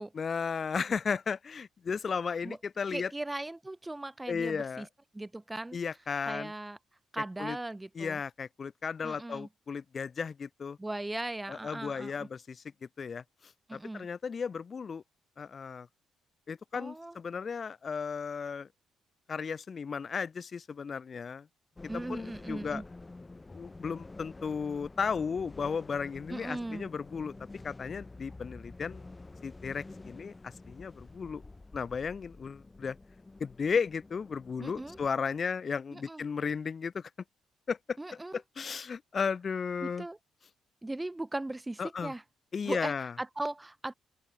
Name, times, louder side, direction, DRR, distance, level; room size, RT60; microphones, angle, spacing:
voice 1, 0.2-3.1 4.3-4.9 5.7-6.5 7.4-7.6 8.0-10.8 11.5-12.6 13.0-13.2 13.7-15.0 15.4-15.9 16.5-18.7 19.3-21.5 22.1-22.8 23.5-27.3 27.6-29.0 29.4-31.4 31.7-33.0 33.4-37.1 37.7-38.0 38.3-40.1 41.8-42.1 42.5-43.1, left 6 dB, 40° left, 0.5 m, -34 dB
voice 2, 2.9-4.9 5.1-5.8 6.2-6.8 7.1-8.2 9.0-9.5 10.8-12.3 13.7-14.1 16.7-17.2 21.9-22.8 26.3-26.9 34.6-35.0 35.9-36.2 38.0-38.4 39.8-40.2 40.8-42.2 42.6-43.9, right 2 dB, 15° right, 0.6 m, -38 dB
sound 1, 21.8-35.1, left 2 dB, 20° left, 3.7 m, -49 dB
open air
cardioid pair, 90°, 0 cm